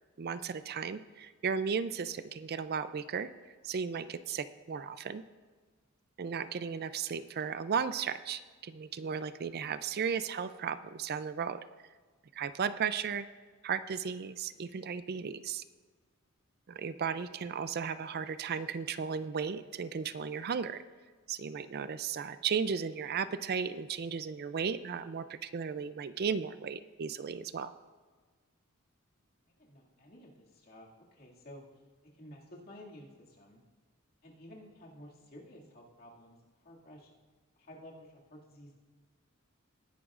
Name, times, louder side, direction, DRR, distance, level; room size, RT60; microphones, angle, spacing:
voice 1, 0.2-3.3 3.6-5.2 6.2-11.6 12.3-13.3 13.6-15.6 16.7-20.8 21.3-27.7, right 6 dB, 50° right, 13 dB, 0.4 m, -35 dB
voice 2, 29.6-31.6 32.0-33.6 34.2-36.4 36.6-37.1 37.6-38.7, left 1 dB, 45° left, -2 dB, 2.3 m, -53 dB
19.0 x 11.0 x 2.5 m, 1.4 s
head